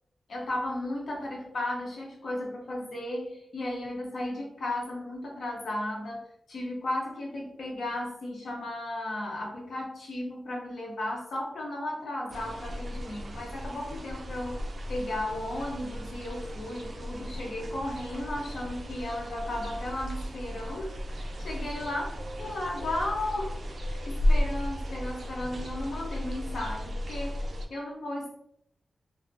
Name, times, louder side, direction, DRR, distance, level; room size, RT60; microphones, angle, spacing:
voice 1, 0.3-14.6 14.9-28.4, left 1 dB, 75° left, -1 dB, 0.7 m, -35 dB
sound 1, 12.3-27.7, equal, 55° right, 0.3 m, -34 dB
2.4 x 2.0 x 2.5 m, 0.70 s
wide cardioid pair, 105°, 0 cm